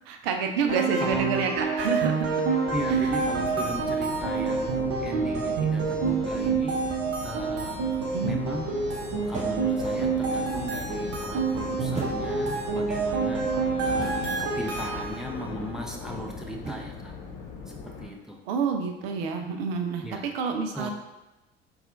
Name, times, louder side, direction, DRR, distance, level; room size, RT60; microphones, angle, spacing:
voice 1, 0.1-2.3 2.9-3.1 8.0-8.4 18.5-20.9, right 5 dB, 75° right, 4 dB, 0.5 m, -28 dB
sound 1, 0.7-15.4, right 4 dB, 50° right, 0.8 m, -28 dB
voice 2, 1.0-1.3 2.7-6.8 7.2-7.8 8.2-8.7 9.3-13.5 13.8-17.1 17.7-18.4 20.0-20.2 20.7-20.9, equal, ahead, 0 dB, 0.4 m, -37 dB
sound 2, 2.7-18.1, left 4 dB, 65° left, 0.8 m, -39 dB
sound 3, 9.3-9.8 11.9-12.7 14.0-14.4 16.6-17.1, right 2 dB, 20° right, 1.3 m, -39 dB
4.1 x 2.3 x 2.6 m, 1.0 s
figure-of-eight pair, 55°, 30 cm